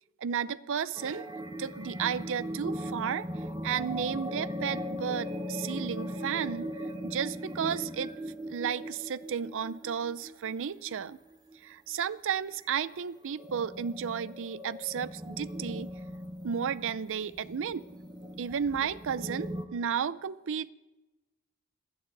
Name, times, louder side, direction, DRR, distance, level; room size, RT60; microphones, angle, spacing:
voice 1, 0.2-1.3 1.6-3.3 3.6-6.7 7.0-8.1 8.5-11.2 11.6-15.9 16.4-17.8 18.4-20.7, right 7 dB, 60° right, 17 dB, 0.5 m, -33 dB
sound 1, 0.9-11.6 12.1-12.2 12.6-12.8 13.2-19.7, equal, 20° right, 0.8 m, -39 dB
28.0 x 9.8 x 4.0 m, 1.1 s
head